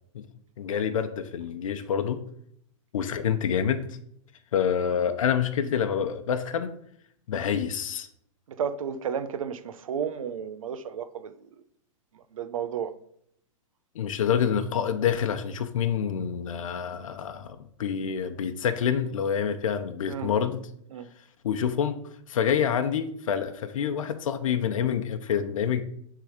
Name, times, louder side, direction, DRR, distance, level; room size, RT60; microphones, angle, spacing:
voice 1, 0.6-2.2 2.9-4.0 4.5-6.7 7.3-8.1 13.9-20.7 21.4-22.0 22.3-25.8, left 8 dB, 75° left, 0.8 m, -27 dB
voice 2, 8.6-11.3 12.3-12.9 20.1-20.3 20.9-21.1, right 7 dB, 80° right, 0.9 m, -32 dB
9.4 x 3.8 x 5.0 m
supercardioid pair, 175°, 17 cm